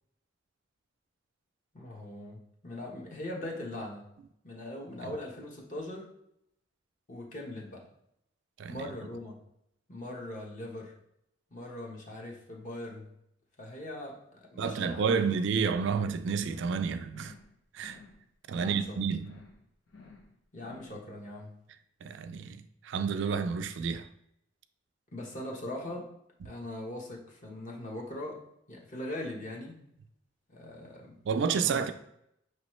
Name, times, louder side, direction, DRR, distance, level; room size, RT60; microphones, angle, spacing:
voice 1, 1.7-4.1 4.4-6.1 7.1-7.9 8.7-9.4 9.9-11.0 11.5-13.1 13.6-15.1 18.5-19.0 20.5-21.6 25.1-26.1 26.4-28.4 28.7-29.8 30.5-31.2 31.6-31.9, left 1 dB, 40° left, 1.0 m, -41 dB
voice 2, 14.6-17.3 17.7-18.0 18.5-19.4 22.0-24.1 26.4-26.5 31.3-31.9, right 6 dB, 65° right, 0.3 m, -30 dB
sound 1, 15.7-16.1 16.4-16.8 17.1-17.5 17.8-18.2 18.5-18.9 19.2-19.6 19.9-20.3 20.6-21.0, left 4 dB, 90° left, 1.0 m, -53 dB
5.6 x 3.0 x 3.1 m
head